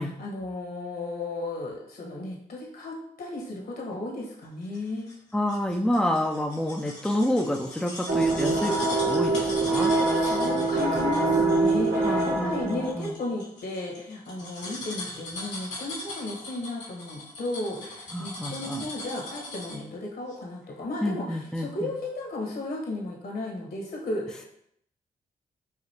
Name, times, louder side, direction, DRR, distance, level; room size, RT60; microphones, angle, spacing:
voice 1, 0.0-5.1 10.2-24.5, left 2 dB, 65° left, -1 dB, 1.3 m, -34 dB
sound 1, 4.7-19.9 20.3-20.4, left 2 dB, 80° left, 1.5 m, -40 dB
voice 2, 5.3-9.9 12.0-13.2 14.4-14.5 18.1-18.8 21.0-21.9, left 1 dB, 5° left, 2 dB, 0.5 m, -28 dB
sound 2, 8.1-13.0, right 3 dB, 70° right, 1.0 m, -24 dB
5.0 x 2.7 x 2.9 m, 0.72 s
hypercardioid pair, 40°, 17 cm